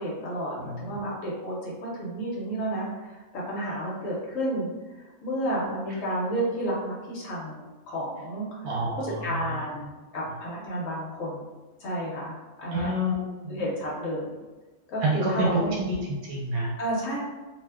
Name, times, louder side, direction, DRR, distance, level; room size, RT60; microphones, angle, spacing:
voice 1, 0.0-4.7 5.0-8.7 9.0-9.9 10.1-11.5 11.8-12.9 13.5-14.3 14.9-15.8 16.8-17.2, right 1 dB, 65° left, -5 dB, 1.1 m, -31 dB
voice 2, 0.6-1.0 8.6-9.5 12.7-13.6 15.0-16.0 16.3-16.7, right 1 dB, 80° right, -4 dB, 1.1 m, -28 dB
2.7 x 2.1 x 3.4 m, 1.2 s
omnidirectional pair, 1.5 m